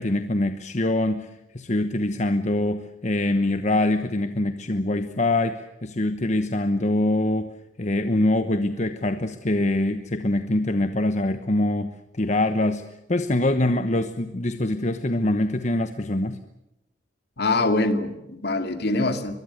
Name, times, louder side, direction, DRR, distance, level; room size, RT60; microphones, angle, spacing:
voice 1, 0.0-7.5 7.8-12.8 13.1-16.4, left 1 dB, 40° left, 9 dB, 1.1 m, -24 dB
voice 2, 17.4-19.4, left 2 dB, 60° left, 8 dB, 2.4 m, -24 dB
23.5 x 22.0 x 8.1 m, 0.88 s
head